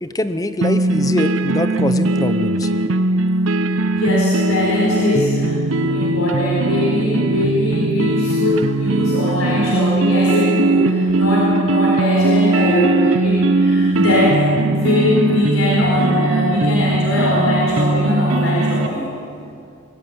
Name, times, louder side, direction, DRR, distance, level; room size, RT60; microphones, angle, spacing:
voice 1, 0.0-2.7, left 1 dB, 15° left, 11 dB, 0.8 m, -23 dB
sound 1, 0.6-18.9, right 2 dB, 75° right, 0.8 m, -19 dB
voice 2, 3.7-19.1, left 1 dB, 85° left, -4 dB, 4.4 m, -20 dB
22.5 x 13.0 x 9.6 m, 2.5 s
head